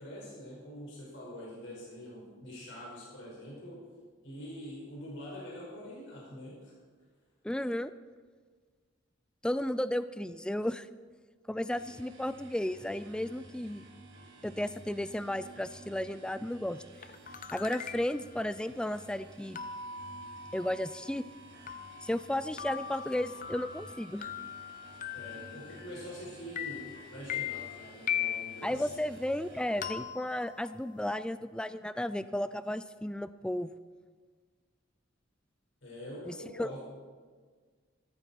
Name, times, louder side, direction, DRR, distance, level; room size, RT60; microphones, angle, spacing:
voice 1, 0.0-3.8 4.2-6.7 25.1-28.9 35.8-36.8, equal, 70° left, -5 dB, 5.6 m, -45 dB
voice 2, 7.4-7.9 9.4-10.9 11.5-13.8 14.4-16.8 17.5-19.6 20.5-21.2 22.0-24.3 28.6-33.7 36.3-36.7, left 1 dB, 5° left, 13 dB, 0.3 m, -34 dB
sound 1, 11.7-29.9, right 2 dB, 65° right, 2.5 m, -53 dB
sound 2, 17.0-18.3 19.6-26.2 26.6-28.7 29.8-31.1, left 9 dB, 45° left, 0.8 m, -40 dB
14.5 x 14.0 x 4.6 m, 1.6 s
head